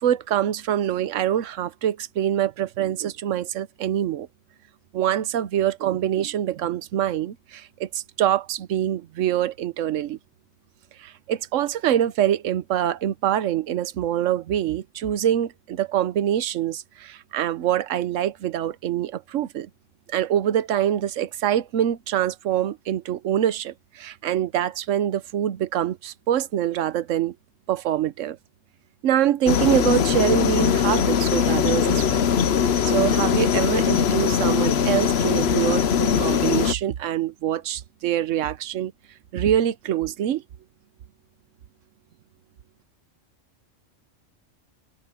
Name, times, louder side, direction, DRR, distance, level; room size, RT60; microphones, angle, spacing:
voice 1, 0.0-4.3 4.9-10.2 11.0-19.7 20.1-27.4 27.7-28.4 29.0-32.2 32.9-38.9 39.3-40.4, right 11 dB, 80° right, 1.1 m, -25 dB
sound 1, 29.5-36.7, left 7 dB, 60° left, 1.0 m, -21 dB
omnidirectional pair, 1.3 m